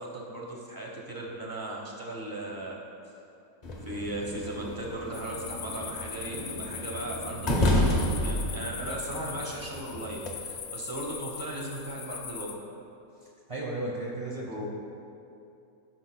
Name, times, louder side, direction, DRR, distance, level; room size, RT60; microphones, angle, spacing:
voice 1, 0.0-2.8 3.8-12.7 14.5-14.6, right 1 dB, 20° right, -2 dB, 0.6 m, -37 dB
sound 1, 3.6-10.3, left 1 dB, 45° left, 0.5 m, -31 dB
sound 2, 5.1-12.5, left 7 dB, 70° left, 1.2 m, -41 dB
voice 2, 13.5-14.6, right 1 dB, 55° right, -4 dB, 0.3 m, -34 dB
14.0 x 6.3 x 2.2 m, 2.7 s
omnidirectional pair, 1.9 m